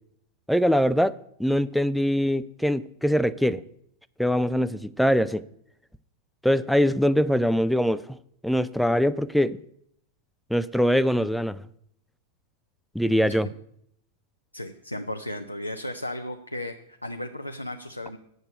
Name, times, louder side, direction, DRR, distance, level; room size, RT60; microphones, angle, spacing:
voice 1, 0.5-1.1 1.4-3.6 4.2-5.4 6.4-8.2 8.4-9.6 10.5-11.6 12.9-13.5, equal, ahead, 0.4 m, -23 dB
voice 2, 14.5-18.2, left 1 dB, 85° left, 0.6 m, -35 dB
7.8 x 6.6 x 8.1 m
figure-of-eight pair, 90°, 0 cm